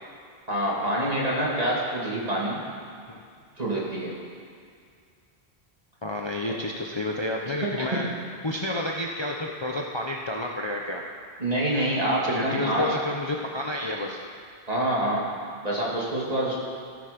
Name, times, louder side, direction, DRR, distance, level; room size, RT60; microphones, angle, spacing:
voice 1, 0.5-2.6 3.6-4.1 7.6-8.0 11.4-12.9 14.7-15.3 15.6-16.6, right 1 dB, 35° right, -5 dB, 2.5 m, -26 dB
voice 2, 6.0-8.0 8.4-11.0 12.2-14.2, left 1 dB, 30° left, 0 dB, 0.7 m, -30 dB
15.5 x 8.9 x 5.2 m, 2.3 s
omnidirectional pair, 1.1 m